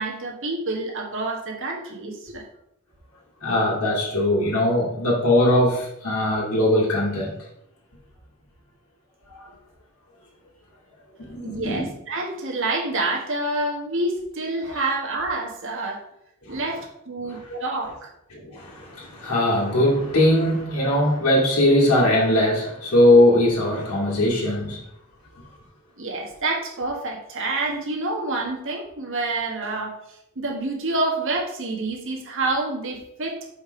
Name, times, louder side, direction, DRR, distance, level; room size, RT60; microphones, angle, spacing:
voice 1, 0.0-2.4 11.4-16.0 16.5-16.8 17.0-18.1 26.0-29.9 30.3-33.4, right 2 dB, 65° right, 0 dB, 1.6 m, -27 dB
voice 2, 3.4-7.3 9.3-9.5 11.3-11.8 16.4-16.6 17.2-17.6 18.3-24.8, left 1 dB, 75° left, -6 dB, 2.2 m, -20 dB
5.2 x 5.1 x 5.0 m, 0.79 s
head